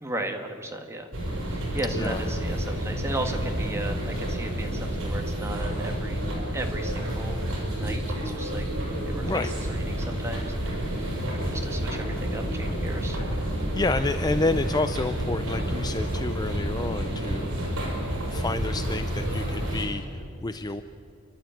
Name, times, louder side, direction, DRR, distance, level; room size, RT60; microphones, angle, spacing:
voice 1, 0.0-1.1 1.5-6.2 6.5-7.4 7.8-13.2, right 1 dB, 10° right, 3 dB, 1.8 m, -36 dB
sound 1, 1.1-19.8, right 1 dB, 60° right, 6.8 m, -29 dB
voice 2, 9.1-9.5 13.7-17.6 18.3-20.8, left 2 dB, 20° left, 10 dB, 0.5 m, -29 dB
29.5 x 12.0 x 9.0 m, 2.5 s
head